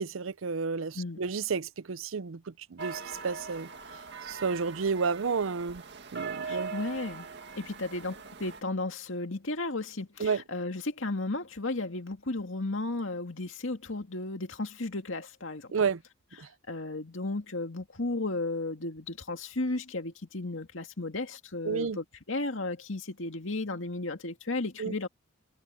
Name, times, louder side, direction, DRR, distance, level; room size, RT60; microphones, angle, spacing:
voice 1, 0.0-3.7 4.2-5.8 6.1-6.7 10.2-10.4 15.7-16.0 16.4-16.5 21.6-22.0 24.8-24.9, right 5 dB, 80° right, 0.6 m, -31 dB
sound 1, 2.8-8.6, right 5 dB, 60° right, 2.0 m, -41 dB
voice 2, 6.4-7.3 7.5-15.7 16.7-25.1, left 2 dB, 70° left, 2.2 m, -34 dB
head